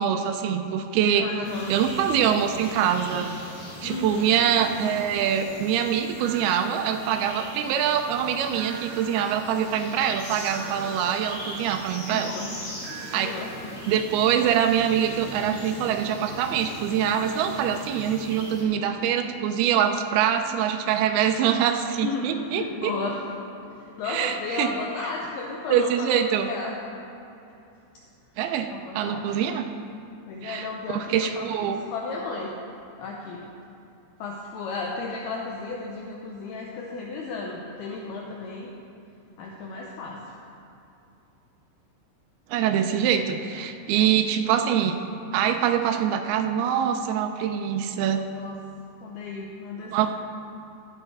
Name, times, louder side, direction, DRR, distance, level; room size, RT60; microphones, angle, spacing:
voice 1, 0.0-1.3 1.7-3.3 3.8-12.3 13.1-13.3 13.9-22.9 24.0-24.7 25.7-26.5 28.4-29.7 30.4-31.8 42.5-45.0 45.3-48.2 49.9-50.1, right 9 dB, 90° right, 5 dB, 2.2 m, -24 dB
voice 2, 1.1-1.7 3.8-4.3 12.1-12.5 12.9-13.5 22.0-23.2 23.8-26.7 28.7-29.2 30.3-32.5 33.0-33.5 34.2-38.7 39.4-40.2 48.3-48.6 49.0-50.1, left 3 dB, 75° left, -2 dB, 2.4 m, -34 dB
sound 1, 1.4-18.6, equal, 30° left, 3.3 m, -40 dB
sound 2, 6.2-7.9 8.5-12.2 12.8-16.6, right 4 dB, 65° right, 3.0 m, -44 dB
14.5 x 8.8 x 4.8 m, 2.8 s
omnidirectional pair, 5.2 m